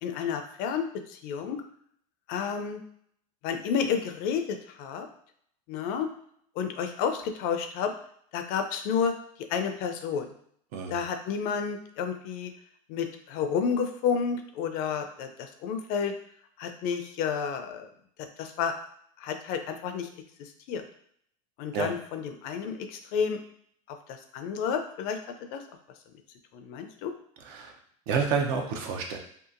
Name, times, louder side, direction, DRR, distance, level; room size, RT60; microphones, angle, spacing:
voice 1, 0.0-1.6 2.3-2.8 3.4-5.1 5.7-6.1 6.6-7.9 8.3-9.1 9.5-10.3 10.9-12.5 12.9-15.3 15.6-16.1 16.6-17.9 18.2-18.7 19.2-20.1 20.4-20.8 21.6-23.4 24.3-25.2 25.5-25.6 26.5-27.1, left 6 dB, 55° left, 6 dB, 0.4 m, -30 dB
voice 2, 28.1-29.2, right 6 dB, 65° right, 3 dB, 0.6 m, -29 dB
2.8 x 2.4 x 2.5 m, 0.65 s
supercardioid pair, 120°, 18 cm